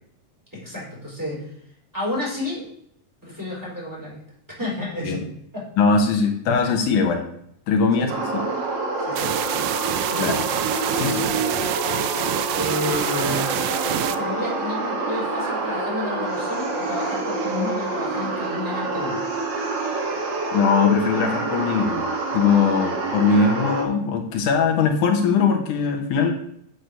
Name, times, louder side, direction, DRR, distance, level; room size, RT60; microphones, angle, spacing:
voice 1, 0.5-1.5 1.9-2.7 3.2-4.2 4.5-5.2 5.5-5.7 8.0-8.1 9.0-9.3 10.1-10.5 11.0-11.7 12.5-13.5 14.0-19.2, left 1 dB, 5° right, -5 dB, 4.5 m, -31 dB
voice 2, 5.8-7.2 7.7-8.4 10.2-10.4 10.9-11.2 20.5-22.1 22.3-26.3, left 5 dB, 80° left, 4 dB, 2.6 m, -20 dB
sound 1, 8.1-23.8, right 3 dB, 45° right, 1.9 m, -27 dB
sound 2, 9.2-14.2, right 13 dB, 90° right, 2.1 m, -27 dB
8.2 x 6.0 x 6.7 m, 0.69 s
omnidirectional pair, 3.5 m